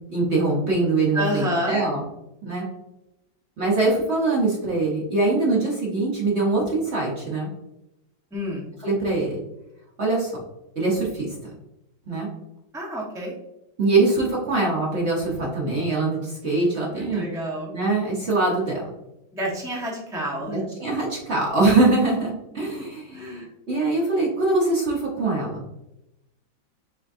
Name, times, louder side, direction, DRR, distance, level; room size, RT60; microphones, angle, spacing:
voice 1, 0.1-2.0 2.4-2.7 3.6-7.5 8.8-9.4 10.0-10.3 10.8-11.3 12.1-12.3 13.8-17.2 17.7-18.8 20.5-25.6, right 2 dB, 45° right, -4 dB, 1.0 m, -23 dB
voice 2, 1.1-1.8 8.3-8.6 12.7-13.3 17.0-17.7 19.3-20.6 23.1-23.5, equal, 5° right, -4 dB, 0.5 m, -29 dB
5.0 x 3.7 x 2.6 m, 0.90 s
omnidirectional pair, 2.2 m